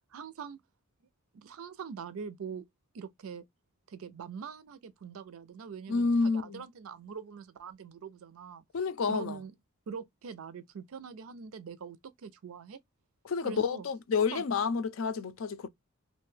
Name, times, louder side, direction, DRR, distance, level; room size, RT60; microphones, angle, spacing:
voice 1, 0.1-0.6 1.3-2.7 2.9-3.4 3.9-8.6 9.1-9.5 9.9-12.8 13.4-13.9 14.3-14.4, right 6 dB, 85° right, 0.4 m, -43 dB
voice 2, 5.9-6.6 8.7-9.4 13.2-15.7, left 5 dB, 70° left, 0.4 m, -29 dB
2.6 x 2.1 x 3.1 m
head